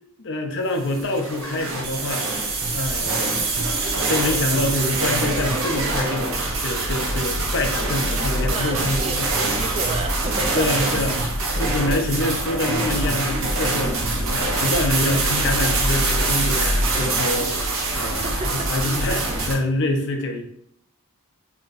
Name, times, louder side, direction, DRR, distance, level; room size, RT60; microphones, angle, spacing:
voice 1, 0.2-2.3 2.7-3.3 4.1-9.3 10.5-14.0 14.3-17.6 17.9-20.4, left 2 dB, 55° left, 4 dB, 0.5 m, -26 dB
sound 1, 0.8-19.5, right 2 dB, 60° right, 0.7 m, -24 dB
voice 2, 8.5-10.8 18.0-18.5, right 3 dB, 30° right, 6 dB, 0.3 m, -31 dB
3.8 x 2.8 x 2.6 m, 0.71 s
head